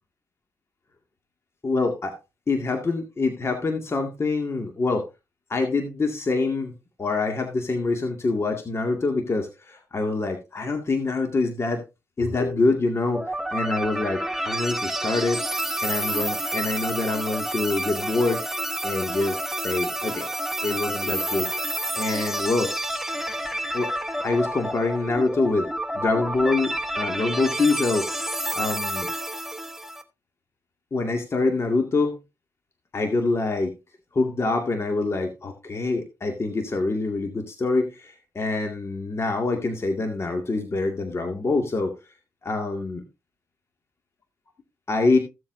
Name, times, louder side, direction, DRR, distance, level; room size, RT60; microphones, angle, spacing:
voice 1, 1.6-2.2 2.5-5.1 5.5-6.7 7.0-11.8 12.2-15.4 15.8-19.4 19.6-20.3 20.6-21.5 21.9-22.7 23.7-23.9 24.2-25.7 25.9-29.1 30.9-32.2 32.9-33.7 34.1-41.9 42.4-43.0 44.9-45.2, left 3 dB, 40° left, 4 dB, 2.1 m, -25 dB
sound 1, 13.1-30.0, right 1 dB, 5° right, 1.3 m, -29 dB
15.5 x 7.6 x 2.7 m, 0.25 s
cardioid pair, 65°, 7 cm